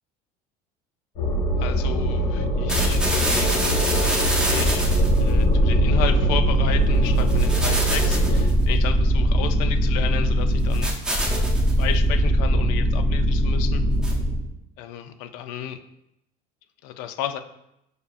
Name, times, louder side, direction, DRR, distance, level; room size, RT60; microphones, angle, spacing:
sound 1, 1.2-8.4, right 1 dB, 50° left, 1.4 m, -24 dB
voice 1, 1.6-4.9 5.2-10.9 11.8-13.8 14.8-15.8 16.8-17.4, left 10 dB, 75° left, 9 dB, 0.4 m, -33 dB
sound 2, 2.7-14.5, equal, 5° right, 0.5 m, -21 dB
6.5 x 2.4 x 2.3 m, 0.81 s
cardioid pair, 165°, 18 cm